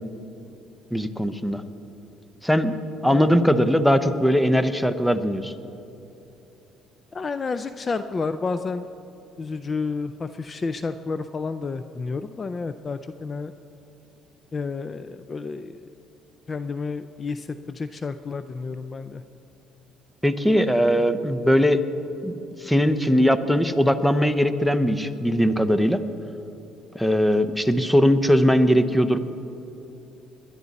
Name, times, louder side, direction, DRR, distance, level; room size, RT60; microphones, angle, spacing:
voice 1, 0.9-1.6 2.4-2.7 3.0-5.5 20.2-21.8 22.2-22.3 22.6-26.0 26.9-29.2, equal, ahead, 11 dB, 0.7 m, -20 dB
voice 2, 7.1-8.9 9.4-13.5 14.5-15.9 16.5-19.2, left 4 dB, 30° left, 11 dB, 0.4 m, -30 dB
22.0 x 10.5 x 4.1 m, 2.8 s
cardioid pair, 110°, 0 cm